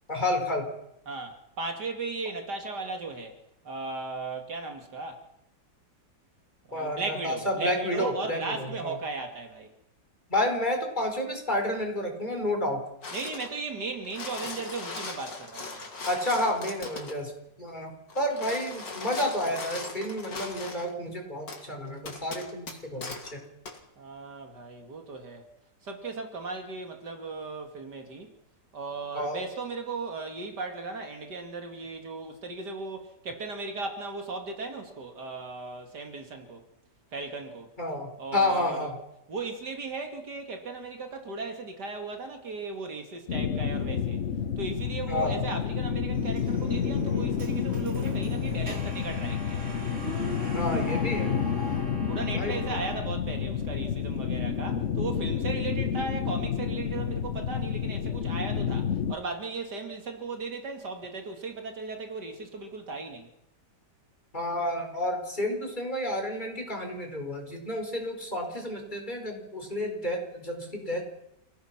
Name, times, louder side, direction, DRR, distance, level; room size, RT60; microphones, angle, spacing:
voice 1, 0.1-0.7 6.7-8.9 10.3-12.8 16.1-17.3 17.6-23.4 29.1-29.5 37.8-39.0 45.1-45.4 50.5-51.4 52.3-52.6 64.3-71.0, left 1 dB, 25° left, 4.8 m, -30 dB
voice 2, 1.1-3.4 3.6-5.2 6.7-9.7 13.1-15.9 24.0-25.5 25.8-28.3 28.7-36.6 37.1-37.7 38.2-38.9 39.3-44.2 44.6-49.6 52.1-63.3, right 3 dB, 65° right, 2.8 m, -36 dB
sound 1, 13.0-13.6 13.9-17.2 18.1-20.9 21.5-21.6 22.0-23.3 23.7-23.8, left 3 dB, 75° left, 3.5 m, -39 dB
sound 2, 43.3-59.2, left 7 dB, 50° left, 1.1 m, -30 dB
sound 3, 46.1-53.0, right 1 dB, 40° right, 4.5 m, -40 dB
29.0 x 18.0 x 5.9 m
omnidirectional pair, 1.9 m